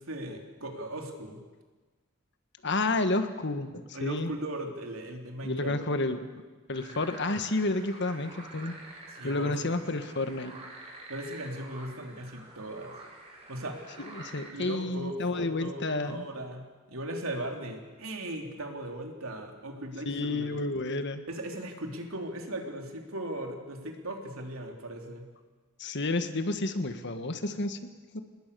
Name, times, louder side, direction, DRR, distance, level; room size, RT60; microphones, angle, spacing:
voice 1, 0.0-1.4 3.9-5.8 9.1-9.7 11.1-12.9 13.5-13.8 14.5-20.6 21.3-25.3, right 1 dB, 85° right, 3 dB, 3.5 m, -38 dB
voice 2, 2.6-4.3 5.4-6.2 6.7-8.7 9.2-10.5 14.0-16.2 20.0-21.2 25.8-27.8 28.1-28.2, left 2 dB, 55° left, 9 dB, 1.7 m, -30 dB
sound 1, 6.7-14.5, right 2 dB, 30° right, 5.6 m, -47 dB
27.5 x 20.5 x 7.0 m, 1.3 s
head